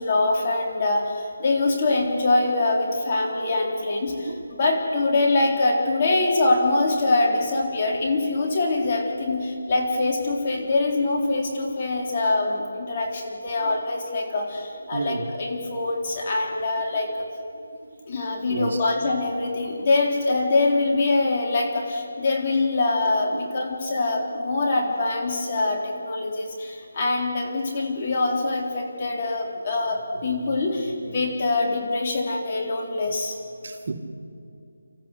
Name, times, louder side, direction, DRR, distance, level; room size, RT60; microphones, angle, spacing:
voice 1, 0.0-17.3 18.1-33.4, left 2 dB, 35° left, 3.9 m, -24 dB
voice 2, 14.9-15.3 17.8-17.9 18.5-18.8 30.2-30.5 33.6-33.9, right 3 dB, 50° right, 1.9 m, -31 dB
26.5 x 14.0 x 8.1 m
figure-of-eight pair, 165°, 0 cm